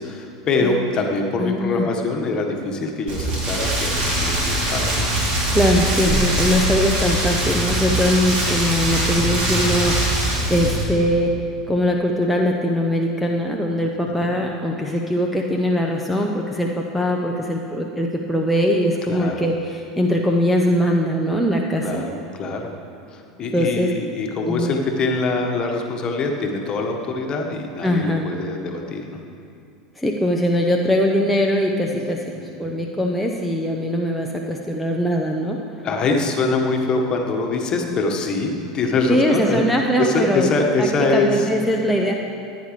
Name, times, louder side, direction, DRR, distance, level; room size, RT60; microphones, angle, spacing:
voice 1, 0.0-5.1 5.5-5.6 6.0-6.4 14.0-14.4 19.1-19.5 21.8-22.7 23.1-29.2 32.3-32.6 35.8-39.6 40.0-41.5, left 3 dB, 35° left, 2 dB, 1.5 m, -24 dB
voice 2, 1.4-1.9 5.5-11.4 11.7-21.9 23.5-23.9 24.5-24.7 27.8-28.3 30.0-32.2 32.6-35.6 39.1-40.5 40.8-40.9 41.1-42.1, equal, ahead, -1 dB, 0.8 m, -21 dB
Rain, 3.1-10.8, right 1 dB, 45° right, 3.0 m, -22 dB
15.0 x 9.3 x 3.3 m, 2.5 s
figure-of-eight pair, 80°, 2 cm